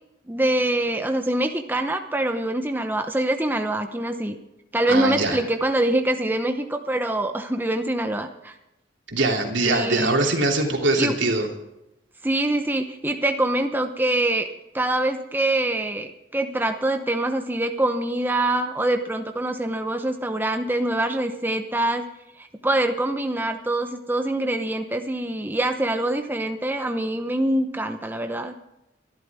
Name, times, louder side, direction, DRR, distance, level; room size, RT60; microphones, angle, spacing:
voice 1, 0.3-4.4 4.7-8.6 9.7-10.2 11.0-11.1 12.2-14.5 14.7-22.0 22.4-28.5, right 1 dB, 10° right, 6 dB, 0.8 m, -24 dB
voice 2, 4.9-5.4 9.1-11.5, right 2 dB, 80° right, 2 dB, 3.0 m, -22 dB
23.5 x 12.0 x 3.6 m, 0.89 s
head